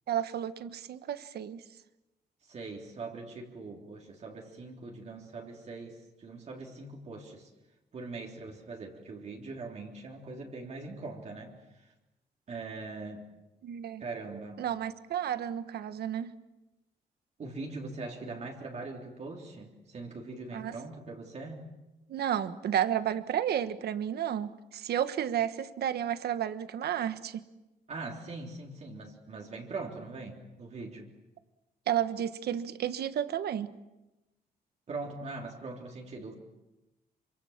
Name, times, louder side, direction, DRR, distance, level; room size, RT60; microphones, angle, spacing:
voice 1, 0.1-1.6 13.6-14.0 14.6-16.3 20.5-20.8 22.1-27.4 31.9-33.7, right 10 dB, 80° right, 12 dB, 1.3 m, -32 dB
voice 2, 2.5-7.5 7.9-11.9 12.5-13.2 14.0-14.6 17.4-21.7 27.9-31.1 34.9-36.3, right 3 dB, 45° right, 0 dB, 3.5 m, -42 dB
27.5 x 25.5 x 7.3 m, 0.99 s
wide cardioid pair, 170°, 16 cm